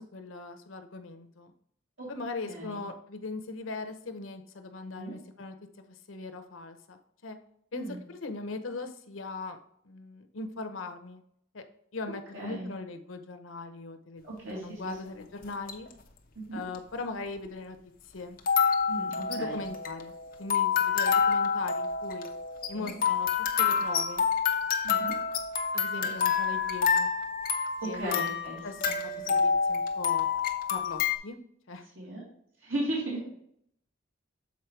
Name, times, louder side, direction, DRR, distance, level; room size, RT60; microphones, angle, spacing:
voice 1, 0.0-1.5 2.1-7.4 7.7-9.6 9.8-11.2 11.5-11.6 11.9-14.2 14.5-15.9 16.5-17.8 18.1-18.4 19.3-20.1 20.4-22.3 22.7-24.3 25.7-27.1 27.8-28.2 28.6-29.0 29.3-30.3 30.7-31.4 31.7-31.9, left 3 dB, 85° left, 7 dB, 0.9 m, -39 dB
voice 2, 2.5-2.8 4.9-5.2 7.7-8.0 12.3-12.7 14.2-14.8 16.4-16.6 18.9-19.7 22.7-22.9 24.8-25.1 26.0-26.1 27.9-28.8 32.0-32.2 32.6-33.2, right 1 dB, 75° right, -5 dB, 2.3 m, -36 dB
sound 1, 15.4-15.9 16.7-16.8 18.4-31.2, left 6 dB, 45° left, 0.8 m, -28 dB
7.3 x 4.3 x 4.6 m, 0.69 s
head